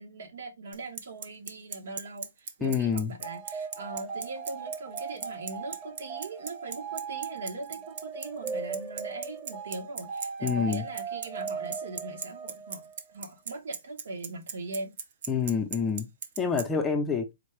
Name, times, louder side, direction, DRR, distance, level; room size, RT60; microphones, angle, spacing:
voice 1, 0.0-14.9, right 2 dB, 70° right, 1.2 m, -40 dB
Bicycle, 0.7-16.6, right 7 dB, 50° right, 0.7 m, -36 dB
voice 2, 2.6-3.1 10.4-10.9 15.3-16.1 16.4-17.3, left 6 dB, 10° left, 0.6 m, -27 dB
sound 1, 3.2-13.0, right 5 dB, 20° right, 0.9 m, -38 dB
4.4 x 2.3 x 3.2 m
hypercardioid pair, 155°, 0 cm